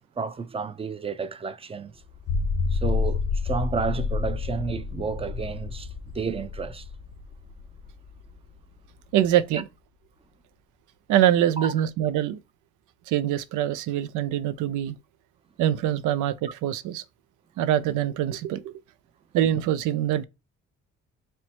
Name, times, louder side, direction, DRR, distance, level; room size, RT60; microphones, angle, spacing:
voice 1, 0.0-1.9 2.7-6.9 9.5-9.6 11.6-11.7, right 5 dB, 20° right, 0.5 m, -31 dB
sound 1, 2.1-8.6, left 5 dB, 80° left, 1.0 m, -29 dB
voice 2, 9.1-9.7 11.1-12.4 13.1-14.9 15.6-17.0 17.6-18.7 19.3-20.2, right 11 dB, 85° right, 0.4 m, -24 dB
4.4 x 2.1 x 4.2 m
cardioid pair, 90°, 30 cm